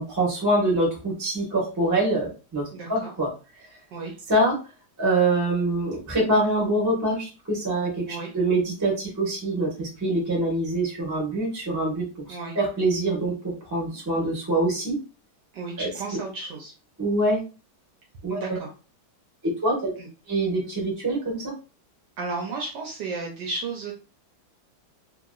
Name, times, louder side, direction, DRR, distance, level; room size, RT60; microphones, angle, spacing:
voice 1, 0.0-2.6 2.9-3.3 4.3-4.5 5.0-13.3 13.6-15.0 15.8-15.9 17.0-17.4 18.2-18.4 19.6-19.9 20.3-21.5, right 1 dB, 15° right, -3 dB, 0.8 m, -24 dB
voice 2, 2.7-3.1 3.9-4.2 8.1-8.3 12.3-12.6 15.5-16.7 18.3-18.7 20.0-20.1 22.2-23.9, right 3 dB, 70° right, 0 dB, 1.1 m, -33 dB
2.9 x 2.8 x 2.3 m, 0.33 s
omnidirectional pair, 2.3 m